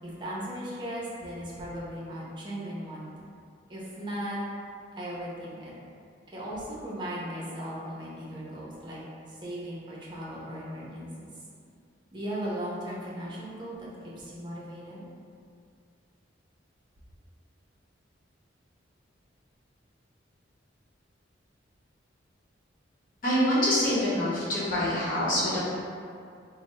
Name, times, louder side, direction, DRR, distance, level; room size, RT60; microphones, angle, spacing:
voice 1, 0.0-3.1 3.7-4.4 5.0-5.7 6.3-9.0 9.3-11.1 12.1-15.0, equal, 25° right, -6 dB, 0.7 m, -37 dB
voice 2, 23.2-25.6, equal, 50° left, -10 dB, 1.1 m, -25 dB
3.3 x 2.1 x 4.2 m, 2.3 s
head